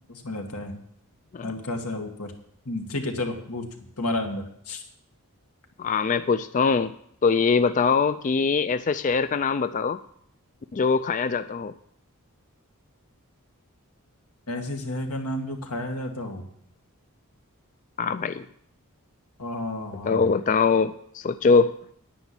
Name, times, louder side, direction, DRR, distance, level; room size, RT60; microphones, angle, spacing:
voice 1, 0.1-0.8 1.4-2.3 2.7-3.7 4.0-4.8 14.5-16.5 19.4-20.3, left 1 dB, 85° left, 3 dB, 2.1 m, -31 dB
voice 2, 5.8-6.9 7.2-10.0 10.7-11.7 18.0-18.4 20.1-21.7, left 5 dB, 35° left, 12 dB, 0.4 m, -22 dB
10.0 x 9.8 x 7.1 m, 0.69 s
head